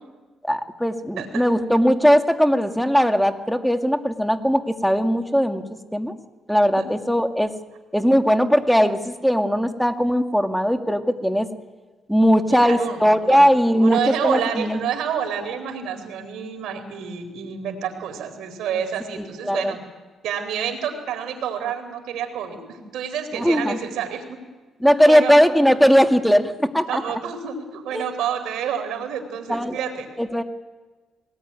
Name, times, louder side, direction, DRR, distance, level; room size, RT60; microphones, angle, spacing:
voice 1, 0.4-5.6 5.9-6.1 6.5-7.5 7.9-11.5 12.1-14.8 19.4-19.7 23.3-23.8 24.8-27.0 27.9-28.0 29.5-29.8 30.2-30.4, equal, ahead, 6 dB, 2.0 m, -19 dB
voice 2, 1.2-1.5 6.8-6.9 12.5-13.4 13.7-19.8 20.2-24.4 25.0-25.3 26.9-30.1, right 8 dB, 85° right, 7 dB, 4.1 m, -29 dB
21.5 x 19.0 x 9.7 m, 1.3 s
cardioid pair, 90°, 0 cm